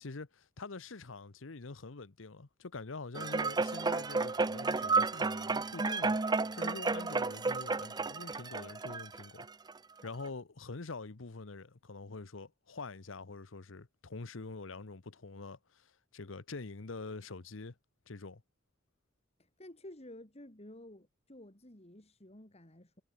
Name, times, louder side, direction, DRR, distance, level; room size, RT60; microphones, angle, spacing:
voice 1, 0.0-9.5 10.0-17.7 18.1-18.4, left 3 dB, 85° left, 1.0 m, -45 dB
sound 1, 3.1-9.7 10.2-10.3, right 3 dB, 20° right, 0.5 m, -32 dB
voice 2, 19.4-23.0, left 1 dB, 35° left, 3.6 m, -52 dB
head